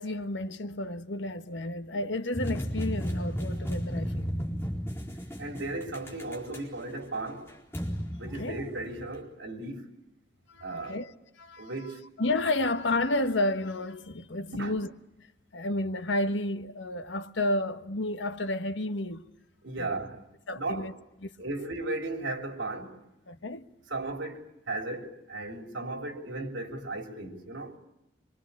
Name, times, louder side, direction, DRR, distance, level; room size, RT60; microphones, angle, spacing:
voice 1, 0.0-4.3 8.2-8.6 10.5-11.1 11.4-11.7 12.2-14.9 15.5-19.3 19.8-20.0 20.5-20.9 21.2-21.5 23.3-23.7, left 2 dB, 85° left, 1.4 m, -31 dB
sound 1, 2.3-9.2, equal, 15° left, 4.2 m, -34 dB
voice 2, 5.4-7.5 8.2-9.9 10.6-11.0 11.6-12.0 14.5-14.8 19.6-20.2 20.5-20.9 21.4-23.0 23.9-27.8, right 2 dB, 85° right, 3.7 m, -36 dB
25.5 x 25.5 x 8.5 m
head